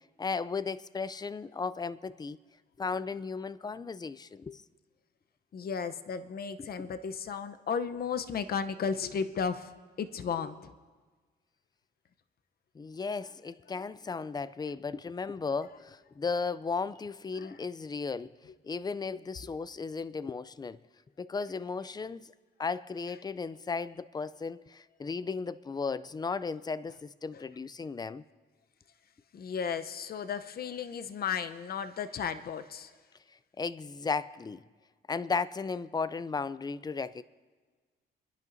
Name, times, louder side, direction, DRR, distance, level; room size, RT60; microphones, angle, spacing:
voice 1, 0.2-2.4 2.8-4.6 6.6-6.9 12.7-18.4 18.6-20.8 21.2-22.3 22.6-28.2 33.6-34.6 35.1-37.2, left 4 dB, 20° left, 0.4 m, -35 dB
voice 2, 5.5-10.7 17.4-17.6 19.4-19.5 27.3-27.4 29.3-33.0, left 6 dB, 50° left, 0.8 m, -34 dB
29.0 x 11.0 x 2.7 m
cardioid pair, 90°, 20 cm